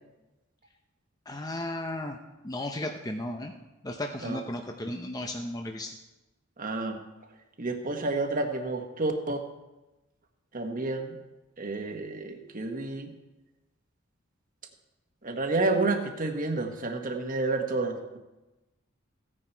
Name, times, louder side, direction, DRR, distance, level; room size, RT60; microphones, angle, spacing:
voice 1, 1.3-2.2 2.4-3.5 3.8-5.9, left 1 dB, 20° left, 4 dB, 0.7 m, -34 dB
voice 2, 6.6-7.0 7.6-9.4 10.5-11.2 11.6-13.1 15.2-18.2, right 3 dB, 40° right, 4 dB, 1.4 m, -30 dB
15.5 x 9.8 x 4.6 m, 1.1 s
head